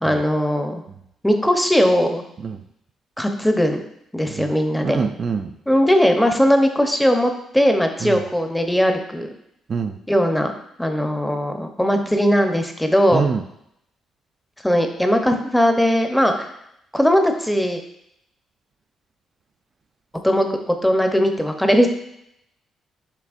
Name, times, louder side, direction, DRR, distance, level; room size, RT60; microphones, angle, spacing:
voice 1, 0.0-0.8 1.2-2.2 3.2-3.8 4.1-5.0 5.7-9.3 10.1-10.5 10.8-13.3 14.6-16.5 16.9-17.8 20.2-21.9, equal, 5° left, 5 dB, 0.6 m, -19 dB
voice 2, 4.8-5.5 8.0-8.2 9.7-10.0 13.1-13.4, right 5 dB, 45° right, 6 dB, 0.3 m, -25 dB
6.0 x 3.3 x 2.4 m, 0.77 s
cardioid pair, 80°, 0 cm